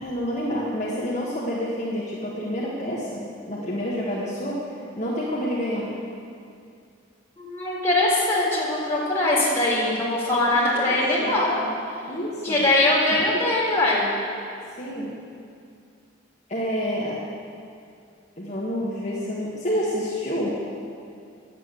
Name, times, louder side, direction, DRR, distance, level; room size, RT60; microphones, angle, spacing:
voice 1, 0.0-5.9 10.5-11.8 12.1-12.7 13.1-13.4 14.8-15.1 16.5-17.2 18.4-20.5, equal, 40° left, -6 dB, 1.6 m, -29 dB
voice 2, 7.4-11.6 12.4-14.1, left 1 dB, 15° left, -8 dB, 3.8 m, -22 dB
11.5 x 8.3 x 8.1 m, 2.4 s
head